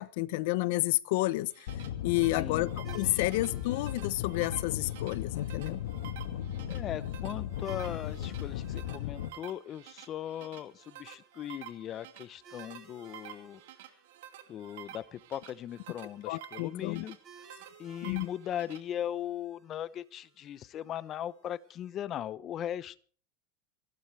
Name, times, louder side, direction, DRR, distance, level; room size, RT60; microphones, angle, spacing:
voice 1, 0.0-1.7 2.0-5.8 16.3-17.0 18.0-18.3, left 19 dB, 65° left, 0.8 m, -30 dB
sound 1, 1.3-18.8, right 12 dB, 80° right, 2.5 m, -50 dB
sound 2, 1.7-9.3, left 10 dB, 80° left, 1.4 m, -37 dB
voice 2, 2.3-2.7 6.7-13.6 14.5-17.2 17.8-23.0, left 10 dB, 30° left, 0.8 m, -39 dB
sound 3, 2.8-22.0, right 6 dB, 25° right, 4.0 m, -59 dB
27.5 x 12.0 x 3.4 m
supercardioid pair, 145°, 0 cm